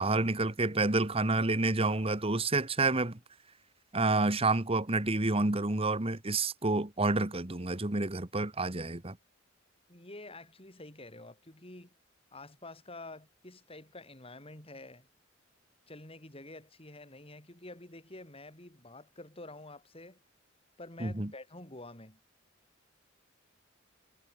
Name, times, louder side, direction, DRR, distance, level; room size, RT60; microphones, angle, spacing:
voice 1, 0.0-3.2 3.9-9.2 21.0-21.3, right 2 dB, 30° right, 1.6 m, -29 dB
voice 2, 9.9-11.9 12.3-15.1 15.9-20.2 20.8-22.2, left 2 dB, 30° left, 5.4 m, -48 dB
head